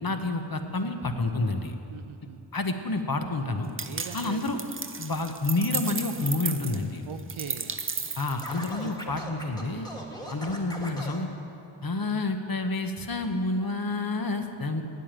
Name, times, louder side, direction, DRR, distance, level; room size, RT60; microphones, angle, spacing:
voice 1, 0.0-1.7 2.5-3.7 4.1-4.6 5.0-7.0 8.2-9.9 10.3-11.3 11.8-14.8, left 2 dB, 45° left, 6 dB, 0.9 m, -29 dB
voice 2, 1.9-2.4 3.9-4.6 7.1-7.8 8.8-9.4 10.1-10.5, right 8 dB, 75° right, 11 dB, 0.6 m, -42 dB
sound 1, 3.8-9.0, right 4 dB, 25° right, 0.5 m, -34 dB
Scratching (performance technique), 8.4-11.2, equal, 10° left, 1.6 m, -39 dB
9.1 x 8.2 x 8.8 m, 2.7 s
wide cardioid pair, 50°, 50 cm